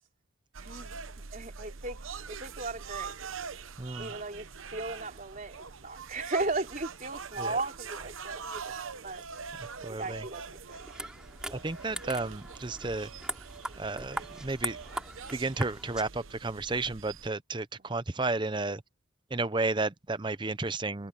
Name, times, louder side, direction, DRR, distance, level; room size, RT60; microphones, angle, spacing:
sound 1, 0.5-17.3, right 5 dB, 80° right, 1.0 m, -43 dB
voice 1, 0.6-1.0 1.3-2.0 2.3-3.3 4.0-9.2 9.9-10.8 17.8-17.9, right 2 dB, 40° right, 4.6 m, -36 dB
voice 2, 3.8-4.1 7.4-7.5 9.8-10.2 11.5-13.1 13.8-14.8 15.3-18.8 19.3-21.1, right 3 dB, 25° right, 0.7 m, -32 dB
sound 2, 10.7-16.0, right 1 dB, 5° right, 3.3 m, -40 dB
head